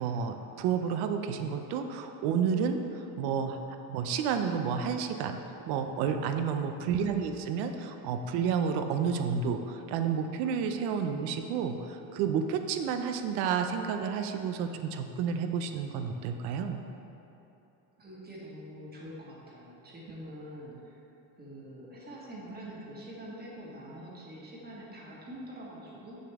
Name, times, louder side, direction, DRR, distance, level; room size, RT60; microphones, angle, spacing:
voice 1, 0.0-3.6 3.9-5.4 5.7-16.8, right 6 dB, 70° right, 7 dB, 0.7 m, -30 dB
voice 2, 18.0-21.0 21.3-26.2, equal, 25° right, -5 dB, 1.5 m, -45 dB
6.8 x 6.5 x 3.6 m, 3.0 s
cardioid pair, 115°, 40 cm